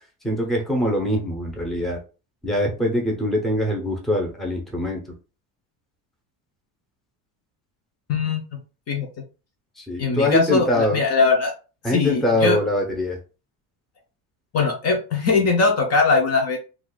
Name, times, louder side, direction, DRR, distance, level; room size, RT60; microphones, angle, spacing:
voice 1, 0.2-2.0 2.4-5.0 9.8-11.0 11.8-13.2, left 1 dB, ahead, 0 dB, 0.7 m, -23 dB
voice 2, 8.1-8.6 8.9-9.1 10.0-11.5 11.9-12.6 14.5-16.6, left 4 dB, 35° left, 3 dB, 0.6 m, -20 dB
2.4 x 2.4 x 3.8 m, 0.33 s
cardioid pair, 135°, 43 cm